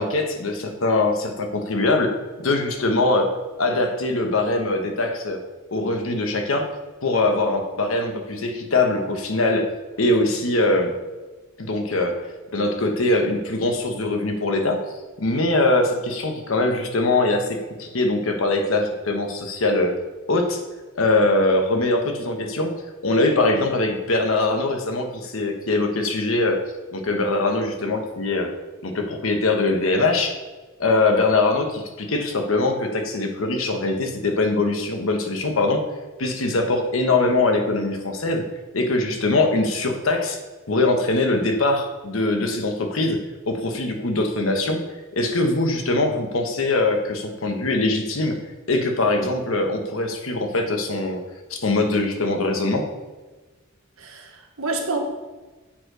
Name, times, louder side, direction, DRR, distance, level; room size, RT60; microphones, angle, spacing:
voice 1, 0.0-5.4 5.7-6.7 7.0-9.7 10.0-10.9 11.6-12.2 12.5-14.8 15.2-20.0 20.3-20.6 20.9-22.7 23.0-26.6 26.9-28.5 28.8-30.4 30.8-35.8 36.2-38.4 38.7-40.4 40.7-44.8 45.1-48.4 48.7-51.2 51.5-52.9, left 2 dB, 70° left, 4 dB, 1.1 m, -22 dB
voice 2, 54.0-55.0, right 3 dB, 85° right, 3 dB, 1.2 m, -28 dB
7.3 x 4.6 x 5.0 m, 1.3 s
head